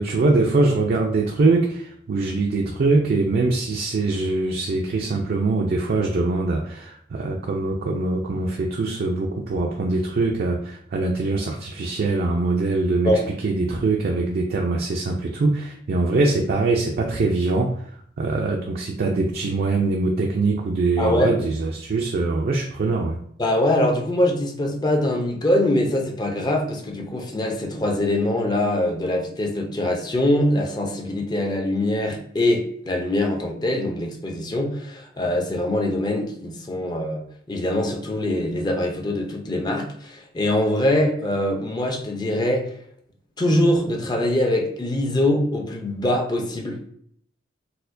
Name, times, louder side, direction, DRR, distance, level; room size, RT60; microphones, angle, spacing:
voice 1, 0.0-17.7 18.2-23.2, right 3 dB, 50° right, 1 dB, 0.4 m, -23 dB
voice 2, 21.0-21.5 23.4-42.7 43.4-46.9, left 1 dB, 20° left, 1 dB, 0.5 m, -23 dB
4.2 x 2.1 x 2.5 m, 0.66 s
head